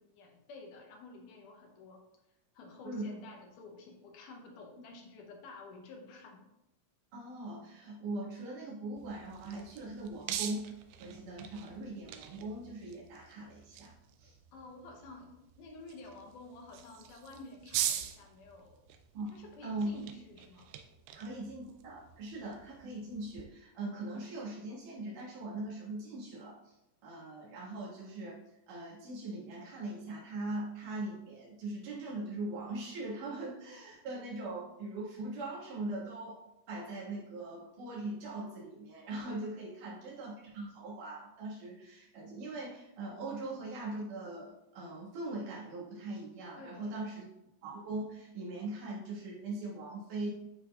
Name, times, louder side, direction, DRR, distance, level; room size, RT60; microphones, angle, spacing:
voice 1, 0.0-2.0 2.5-6.4 14.5-15.3 15.6-18.8 19.3-20.7 39.5-39.7 46.6-47.1, left 3 dB, 70° left, 2 dB, 2.1 m, -51 dB
voice 2, 2.8-3.2 7.1-10.7 11.0-13.9 14.2-14.4 19.1-20.0 21.1-26.7 27.0-28.4 28.7-36.4 36.7-47.2 47.6-50.3, right 2 dB, 60° right, -6 dB, 3.1 m, -41 dB
sound 1, 9.0-23.4, right 11 dB, 85° right, 2.4 m, -43 dB
11.0 x 4.0 x 2.4 m, 0.90 s
omnidirectional pair, 4.4 m